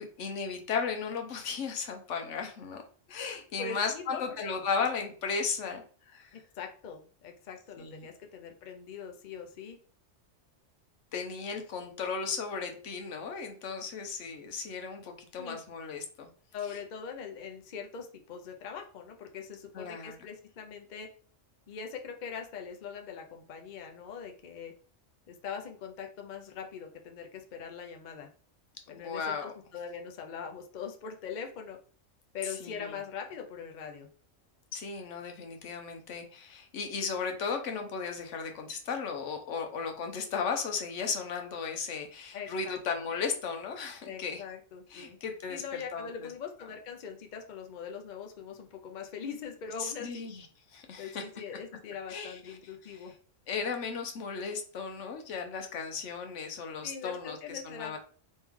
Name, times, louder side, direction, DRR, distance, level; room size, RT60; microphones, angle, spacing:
voice 1, 0.0-2.8 3.1-6.3 7.8-8.1 11.1-16.3 16.7-16.8 19.7-20.2 28.9-29.5 32.4-33.0 34.7-44.4 44.9-46.3 49.8-51.2 52.1-52.6 52.8-53.1 53.5-58.0, left 5 dB, 70° left, 4 dB, 1.0 m, -35 dB
voice 2, 3.6-4.4 6.6-9.8 15.4-15.6 16.5-21.1 21.7-24.7 25.3-28.3 28.9-31.8 32.3-34.1 42.3-43.1 44.0-45.2 45.5-50.3 51.0-53.1 56.8-58.0, left 6 dB, 50° left, 3 dB, 0.5 m, -42 dB
3.2 x 3.1 x 3.5 m, 0.43 s
omnidirectional pair, 1.3 m